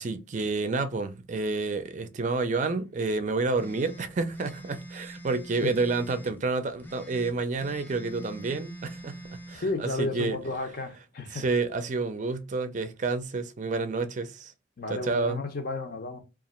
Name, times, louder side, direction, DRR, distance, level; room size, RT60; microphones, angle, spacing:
voice 1, 0.0-10.4 11.3-14.5 14.9-15.4, right 3 dB, 40° right, 0.4 m, -29 dB
sound 1, 3.6-6.4 6.8-9.6, right 2 dB, 10° left, 0.5 m, -45 dB
voice 2, 9.5-11.4 14.8-16.2, left 2 dB, 50° left, 0.7 m, -32 dB
2.8 x 2.4 x 4.2 m
head